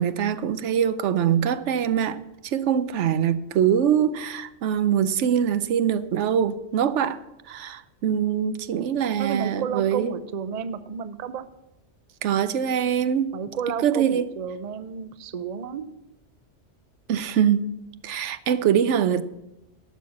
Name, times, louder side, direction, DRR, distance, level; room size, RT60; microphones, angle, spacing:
voice 1, 0.0-7.2 7.5-10.1 12.2-13.3 13.8-14.3 17.1-17.6 18.0-19.2, right 9 dB, 75° right, 0.9 m, -23 dB
voice 2, 9.2-11.5 13.3-15.9, right 6 dB, 45° right, 0.6 m, -31 dB
12.0 x 6.4 x 7.1 m
omnidirectional pair, 1.2 m